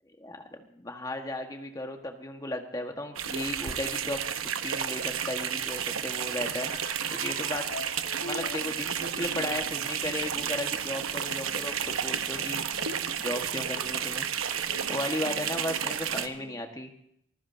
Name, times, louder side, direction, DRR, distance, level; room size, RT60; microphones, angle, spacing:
voice 1, 0.2-7.7 8.2-12.7 13.2-14.3 14.9-16.9, left 1 dB, 15° left, 4 dB, 1.4 m, -35 dB
sound 1, 3.2-16.3, right 8 dB, 85° right, 1.0 m, -32 dB
sound 2, 5.3-12.0, left 2 dB, 90° left, 1.6 m, -45 dB
sound 3, 11.1-16.6, left 1 dB, 65° left, 5.7 m, -50 dB
24.5 x 15.0 x 2.7 m, 0.73 s
head